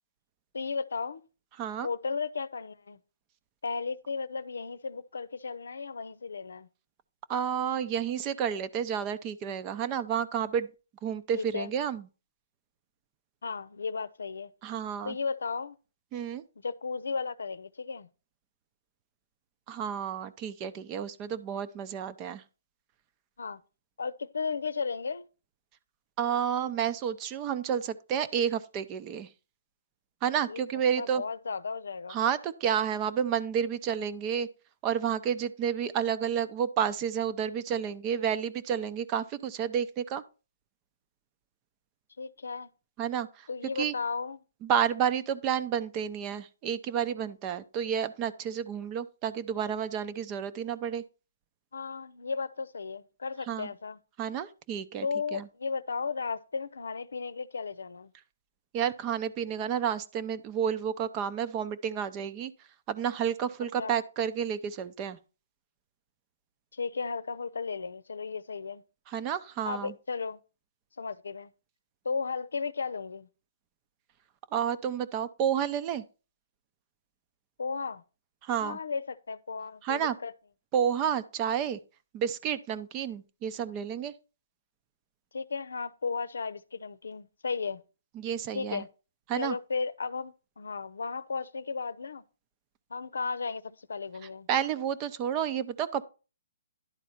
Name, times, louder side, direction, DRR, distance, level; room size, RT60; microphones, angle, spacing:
voice 1, 0.5-1.2 1.8-3.0 3.6-6.7 11.3-11.7 13.4-14.5 15.0-15.8 16.6-18.1 23.4-23.6 24.0-25.3 30.5-30.6 31.0-32.2 42.2-42.7 43.5-44.4 51.7-54.0 55.0-58.1 63.8-63.9 66.7-68.8 69.6-70.4 71.0-71.5 72.0-73.3 77.6-78.0 78.6-80.3 85.3-87.8 88.5-88.9 89.4-92.2 92.9-94.5, left 5 dB, 85° left, 0.7 m, -35 dB
voice 2, 1.6-1.9 7.3-10.7 11.0-12.0 14.6-15.2 16.1-16.4 19.7-22.4 26.2-29.3 30.2-31.2 32.1-34.5 34.8-40.2 43.0-43.5 43.8-43.9 44.6-51.0 53.5-53.7 54.2-55.1 55.3-55.5 58.7-62.5 62.9-65.2 69.1-69.9 74.5-76.0 78.4-78.8 79.8-80.2 80.7-81.8 82.1-84.1 88.2-88.8 89.3-89.5 94.5-96.0, right 8 dB, 25° right, 0.7 m, -30 dB
11.0 x 4.1 x 5.7 m
hypercardioid pair, 155°, 0 cm